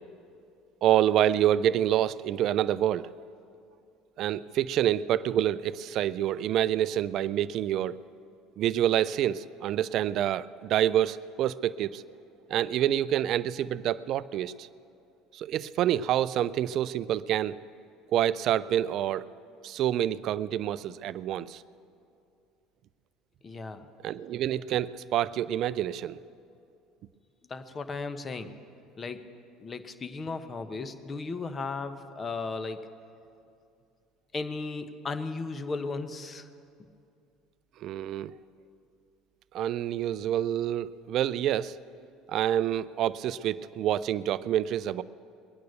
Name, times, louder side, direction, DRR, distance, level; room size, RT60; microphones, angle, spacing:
voice 1, 0.8-3.1 4.2-8.0 8.6-12.0 12.5-14.7 15.3-17.6 18.1-19.3 19.6-21.6 24.0-26.2 37.8-38.3 39.5-41.8 42.3-45.0, right 11 dB, 55° right, 17 dB, 0.4 m, -27 dB
voice 2, 23.4-23.9 27.5-28.5 29.0-29.3 29.6-32.9 34.3-36.5, left 3 dB, 30° left, 10 dB, 1.1 m, -35 dB
21.5 x 9.3 x 6.8 m, 2.5 s
hypercardioid pair, 70°, 0 cm